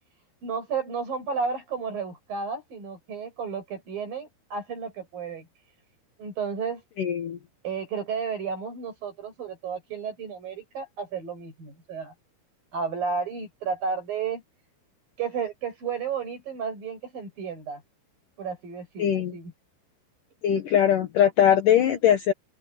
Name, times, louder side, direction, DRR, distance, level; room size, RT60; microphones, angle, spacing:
voice 1, 0.4-5.5 6.2-6.8 7.6-12.1 12.7-14.4 15.2-17.8 18.4-19.5, right 5 dB, 60° right, 9.1 m, -32 dB
voice 2, 7.0-7.4 19.0-19.3 20.4-22.3, left 9 dB, 65° left, 2.7 m, -21 dB
open air
omnidirectional pair, 4.6 m